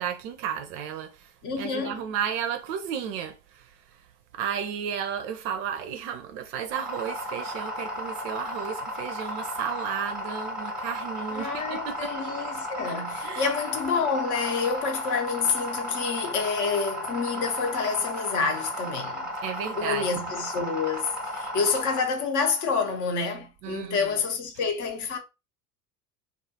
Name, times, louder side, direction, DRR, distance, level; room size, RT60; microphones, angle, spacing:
voice 1, 0.0-3.7 4.3-12.1 13.2-13.5 19.4-20.1 23.6-24.1, right 8 dB, 50° right, 0.5 m, -33 dB
voice 2, 1.4-2.0 11.3-19.3 19.7-25.2, left 5 dB, 40° left, 0.8 m, -28 dB
sound 1, 6.7-22.0, equal, ahead, 0.9 m, -34 dB
2.4 x 2.3 x 2.6 m
figure-of-eight pair, 70°, 48 cm